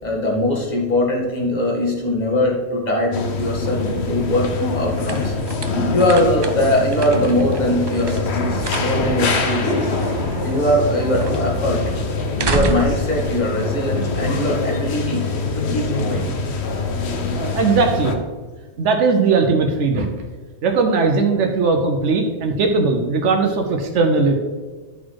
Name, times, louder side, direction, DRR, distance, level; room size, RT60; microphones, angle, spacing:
voice 1, 0.0-5.3 5.9-9.9 10.4-11.9 12.5-15.2 15.6-16.3, left 1 dB, 35° left, -2 dB, 1.9 m, -21 dB
sound 1, 3.1-18.2, left 3 dB, 65° left, 1.1 m, -24 dB
sound 2, 3.8-14.4, right 4 dB, 40° right, 0.4 m, -30 dB
voice 2, 17.3-18.1 18.8-20.3 20.6-24.3, right 4 dB, 90° right, 3 dB, 1.1 m, -18 dB
12.0 x 4.1 x 4.7 m, 1.4 s
omnidirectional pair, 1.2 m